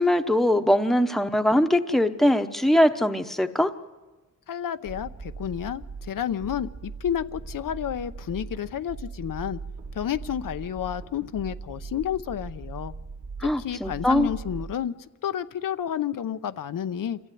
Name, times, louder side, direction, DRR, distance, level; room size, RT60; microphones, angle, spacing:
voice 1, 0.0-3.7 13.4-14.3, left 1 dB, ahead, 7 dB, 0.9 m, -21 dB
voice 2, 4.5-9.6 9.9-12.9 13.4-14.9 15.2-17.2, left 9 dB, 90° left, 11 dB, 0.7 m, -30 dB
sound 1, 4.8-14.7, right 4 dB, 70° right, 2.3 m, -40 dB
26.5 x 14.5 x 9.2 m, 1.2 s
wide cardioid pair, 150°, 32 cm